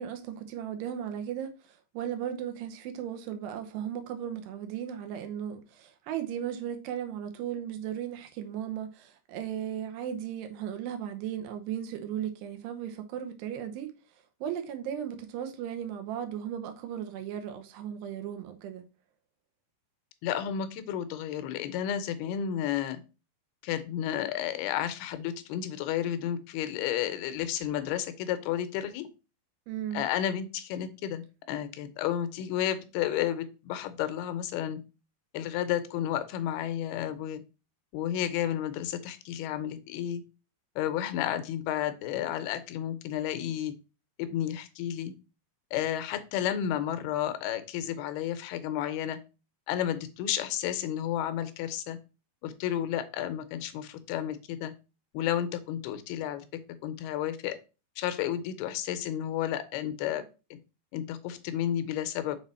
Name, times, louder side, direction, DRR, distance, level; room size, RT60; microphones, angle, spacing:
voice 1, 0.0-13.9 14.4-18.8 29.7-30.0, right 9 dB, 90° right, 3.0 m, -36 dB
voice 2, 20.2-23.0 23.6-29.1 29.9-34.8 35.3-37.4 37.9-40.2 40.8-43.7 44.2-45.1 45.7-49.2 49.7-52.0 52.4-54.7 55.1-56.5 56.8-57.6 58.0-60.2 60.9-62.4, left 10 dB, 80° left, 2.6 m, -32 dB
6.8 x 4.1 x 4.2 m
omnidirectional pair, 4.7 m